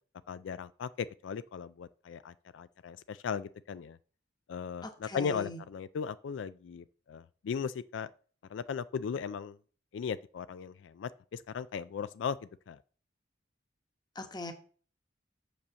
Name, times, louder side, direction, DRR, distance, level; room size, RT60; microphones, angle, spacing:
voice 1, 0.3-4.0 4.5-8.1 8.5-9.6 9.9-12.8, left 6 dB, 80° left, 0.3 m, -37 dB
voice 2, 4.8-5.6 14.1-14.5, left 2 dB, 20° left, 1.0 m, -41 dB
6.9 x 5.2 x 6.2 m
head